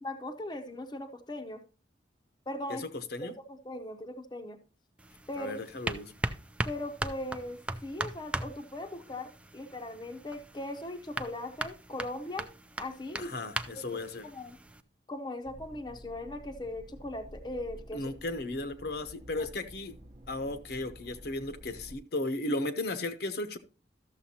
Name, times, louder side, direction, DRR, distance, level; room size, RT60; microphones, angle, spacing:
voice 1, 0.0-1.6 2.5-2.8 3.2-4.6 5.3-5.6 6.6-12.5 12.8-13.3 13.7-13.8 14.2-14.6 15.1-18.1 19.3-19.5, left 1 dB, 25° left, 0.7 m, -39 dB
voice 2, 2.7-3.3 5.4-6.1 13.2-14.3 17.9-20.0 20.3-23.6, left 2 dB, 60° left, 0.8 m, -35 dB
sound 1, 5.0-14.8, right 1 dB, 5° right, 0.3 m, -39 dB
sound 2, 15.4-22.0, equal, 40° right, 0.8 m, -50 dB
13.0 x 6.8 x 2.8 m
head